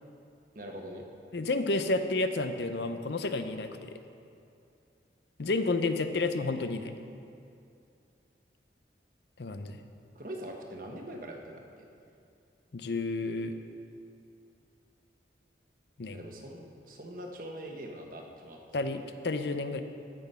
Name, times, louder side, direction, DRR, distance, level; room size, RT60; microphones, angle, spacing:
voice 1, 0.5-1.1 10.1-11.6 16.1-18.6, right 1 dB, 50° right, 1 dB, 1.3 m, -42 dB
voice 2, 1.3-4.0 5.4-6.9 9.4-9.8 12.7-13.6 16.0-16.2 18.7-19.8, left 3 dB, 70° left, 8 dB, 0.6 m, -31 dB
15.5 x 6.1 x 5.5 m, 2.5 s
head